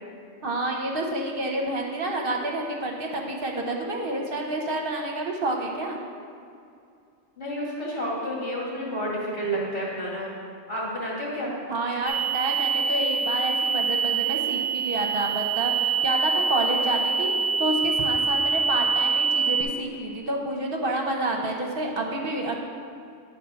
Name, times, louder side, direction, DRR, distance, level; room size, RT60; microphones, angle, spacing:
voice 1, 0.4-6.0 11.7-22.6, right 2 dB, 50° right, 1 dB, 1.0 m, -29 dB
voice 2, 7.4-10.3 10.7-11.5, equal, 70° left, -5 dB, 2.4 m, -30 dB
sound 1, 12.1-19.6, right 5 dB, 55° left, 1.5 m, -25 dB
9.9 x 4.3 x 5.7 m, 2.4 s
omnidirectional pair, 1.3 m